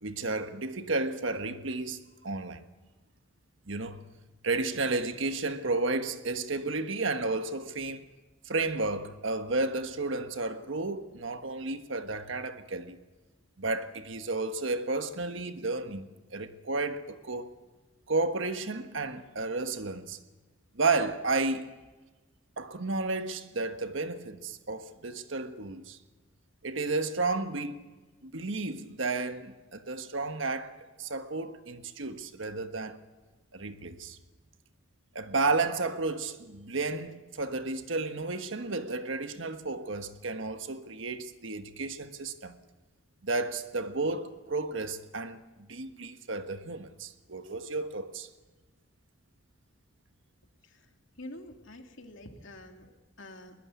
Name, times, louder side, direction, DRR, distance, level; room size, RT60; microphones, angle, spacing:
voice 1, 0.0-2.6 3.7-4.1 4.4-8.1 8.4-13.0 13.6-17.5 18.1-20.2 20.7-21.8 22.6-26.0 26.6-27.8 28.2-33.0 33.5-34.2 35.1-42.6 43.2-48.3, right 3 dB, 65° right, 1.4 m, -32 dB
voice 2, 51.2-53.6, left 1 dB, 65° left, 2.5 m, -47 dB
21.5 x 20.0 x 8.3 m
head